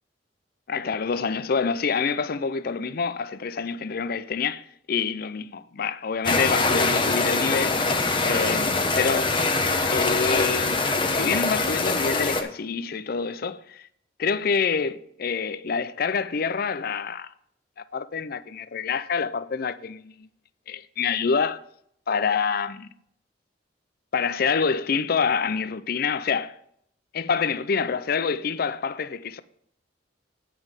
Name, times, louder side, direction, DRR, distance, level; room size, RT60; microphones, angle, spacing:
voice 1, 0.7-7.8 8.2-9.3 9.9-10.8 11.1-13.9 14.2-17.3 17.9-20.3 20.7-21.6 22.1-22.9 24.1-26.6 27.1-29.4, left 5 dB, 55° left, 0.5 m, -27 dB
sound 1, 6.2-12.4, left 3 dB, 30° left, 0.9 m, -23 dB
9.3 x 6.0 x 5.1 m
head